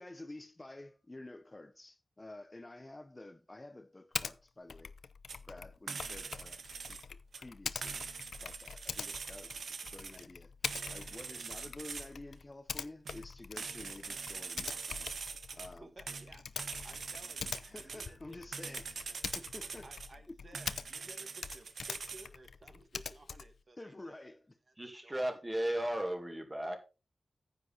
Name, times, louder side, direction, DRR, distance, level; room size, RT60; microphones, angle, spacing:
voice 1, 0.0-4.9 5.5-8.0 8.4-15.1 15.5-15.9 17.4-19.9 20.3-20.4 23.8-24.5, left 2 dB, 25° left, 0.7 m, -50 dB
Typing, 4.1-4.4 4.7-21.1 21.4-23.6, left 5 dB, 85° left, 0.5 m, -44 dB
sound 1, 5.3-5.4 5.9-7.0 7.3-7.4 7.8-10.2 10.6-12.1 13.1-13.2 13.6-15.7 16.1-18.1 18.5-20.1 20.5-22.3, right 5 dB, 90° right, 1.1 m, -43 dB
voice 2, 15.8-16.4 16.8-18.4 19.8-24.2 24.7-24.8 25.0-25.4, right 2 dB, 50° right, 1.3 m, -56 dB
voice 3, 24.8-26.8, right 1 dB, 15° right, 2.2 m, -35 dB
9.8 x 8.3 x 4.1 m
wide cardioid pair, 110°, 0 cm